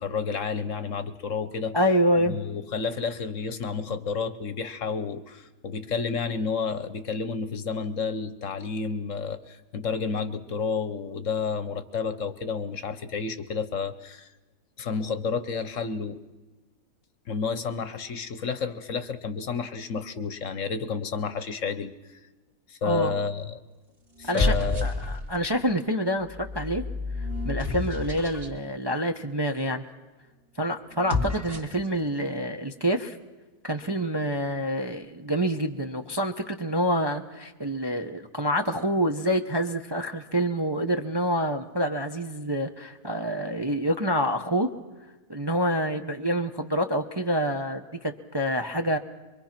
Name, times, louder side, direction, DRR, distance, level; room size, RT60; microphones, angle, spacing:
voice 1, 0.0-1.8 2.3-14.3 14.8-16.2 17.3-22.2 22.7-23.6 24.2-24.9, left 5 dB, 55° left, 11 dB, 1.2 m, -30 dB
voice 2, 1.7-2.4 22.8-23.1 24.3-24.6 24.8-26.8 27.2-29.9 30.6-33.2 33.6-44.7 45.3-49.0, equal, 20° right, 4 dB, 0.7 m, -27 dB
sound 1, 22.9-23.3 24.1-25.5 26.2-28.6 30.9-31.9, left 3 dB, 40° right, 2.5 m, -30 dB
24.0 x 24.0 x 5.9 m, 1.2 s
omnidirectional pair, 1.7 m